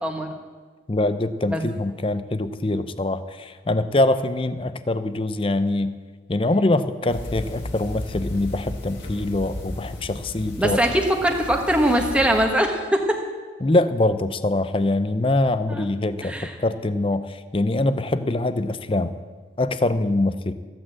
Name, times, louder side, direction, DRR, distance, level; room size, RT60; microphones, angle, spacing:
voice 1, 0.0-0.3 1.5-1.6 10.6-13.2 15.7-15.9 16.2-16.5, right 1 dB, 5° right, 2 dB, 1.3 m, -22 dB
voice 2, 0.9-5.9 6.3-10.8 13.6-19.2 19.6-20.5, left 2 dB, 30° left, 12 dB, 0.6 m, -23 dB
sound 1, 7.1-12.5, left 1 dB, 90° left, 3.2 m, -35 dB
15.0 x 8.7 x 7.6 m, 1.5 s
head